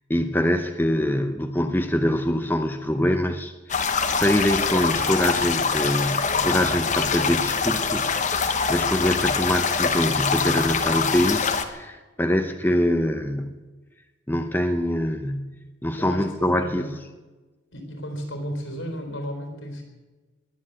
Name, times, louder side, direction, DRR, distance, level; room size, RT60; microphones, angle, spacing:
voice 1, 0.1-13.6 14.3-15.6 15.8-16.8, left 1 dB, 10° left, 6 dB, 0.7 m, -24 dB
sound 1, 3.7-11.6, left 5 dB, 40° left, 1.1 m, -24 dB
voice 2, 16.0-16.9 17.7-19.8, equal, 80° left, 5 dB, 4.2 m, -33 dB
21.0 x 8.0 x 8.3 m, 1.2 s
head